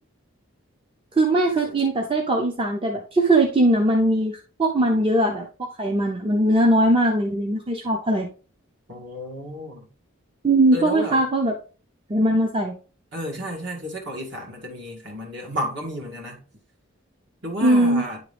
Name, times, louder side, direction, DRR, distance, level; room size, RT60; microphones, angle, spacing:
voice 1, 1.1-8.3 10.4-11.5 12.1-12.7 17.6-18.0, right 1 dB, 25° right, 0.7 m, -20 dB
voice 2, 8.9-9.9 10.7-11.2 13.1-16.4 17.4-18.2, equal, 55° right, 2.0 m, -32 dB
9.9 x 3.7 x 3.4 m
head